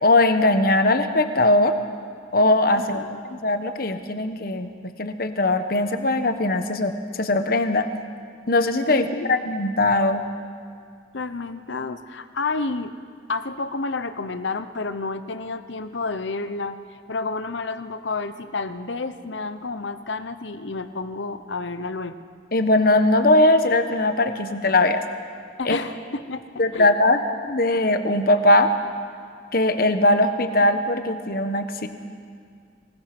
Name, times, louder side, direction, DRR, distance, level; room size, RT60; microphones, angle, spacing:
voice 1, 0.0-1.7 2.3-3.0 3.3-7.9 8.5-10.2 22.5-25.0 25.6-25.8 26.6-28.7 29.5-31.9, left 2 dB, 50° left, 8 dB, 1.2 m, -20 dB
voice 2, 2.7-3.2 8.9-9.3 11.1-12.9 13.3-16.8 17.1-22.2 25.6-26.4 26.7-26.9, left 3 dB, 75° left, 11 dB, 0.9 m, -30 dB
25.0 x 20.5 x 6.1 m, 2.1 s
head